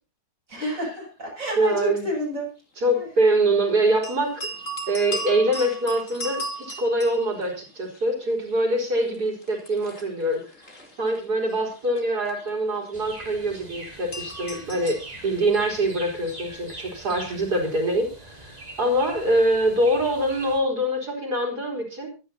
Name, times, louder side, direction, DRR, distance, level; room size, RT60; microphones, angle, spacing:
voice 1, 0.5-2.5 2.9-3.1, right 1 dB, 55° right, -2 dB, 8.5 m, -29 dB
voice 2, 1.6-2.1 2.8-4.5 4.9-10.7 11.0-22.2, right 1 dB, 85° right, -1 dB, 4.8 m, -24 dB
sound 1, 4.0-8.0 8.3-15.4, right 1 dB, 50° left, 3.3 m, -37 dB
sound 2, 12.9-20.6, right 2 dB, 25° right, 3.0 m, -43 dB
24.5 x 10.0 x 2.9 m, 0.32 s
omnidirectional pair, 1.7 m